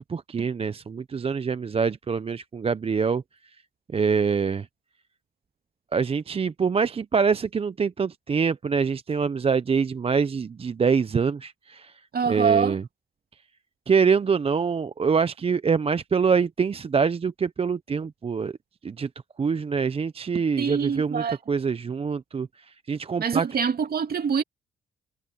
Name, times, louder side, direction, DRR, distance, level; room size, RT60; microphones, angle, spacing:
voice 1, 0.0-3.2 3.9-4.7 5.9-11.9 12.3-12.8 13.9-18.5 18.8-19.1 19.4-22.5 22.9-23.4, right 5 dB, 30° right, 0.6 m, -25 dB
voice 2, 12.1-12.8 20.6-21.4 23.2-24.4, right 6 dB, 50° right, 2.7 m, -25 dB
cardioid pair, 90°, 20 cm